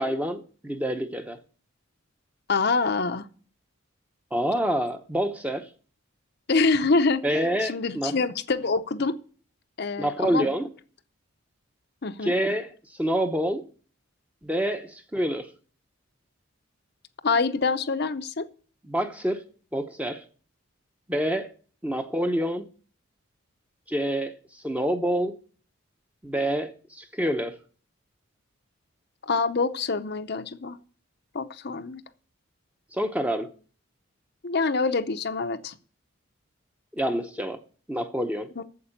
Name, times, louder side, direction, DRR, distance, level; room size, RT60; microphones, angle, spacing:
voice 1, 0.0-1.4 4.3-5.7 7.2-8.2 10.0-10.7 12.2-13.7 14.4-15.5 18.8-19.4 19.7-20.2 21.1-21.5 21.8-22.7 23.9-24.4 24.6-25.3 26.2-27.6 32.9-33.5 36.9-37.6 37.9-38.5, equal, 5° right, 0.8 m, -27 dB
voice 2, 2.5-3.3 6.5-7.2 7.6-9.1 9.8-10.5 12.0-12.3 17.2-18.5 29.2-30.8 31.3-32.0 34.4-35.7 38.6-38.7, left 4 dB, 50° left, 0.7 m, -25 dB
8.5 x 7.5 x 8.9 m
head